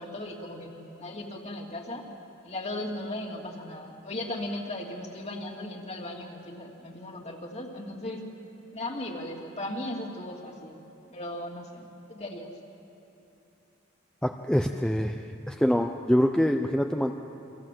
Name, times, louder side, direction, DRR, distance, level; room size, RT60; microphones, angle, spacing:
voice 1, 0.0-2.1 2.4-8.2 8.7-10.8 11.1-12.5, left 1 dB, 30° left, 1 dB, 2.8 m, -37 dB
voice 2, 14.2-15.2 15.5-17.1, equal, 5° left, 4 dB, 0.7 m, -25 dB
29.0 x 25.5 x 7.7 m, 2.8 s
head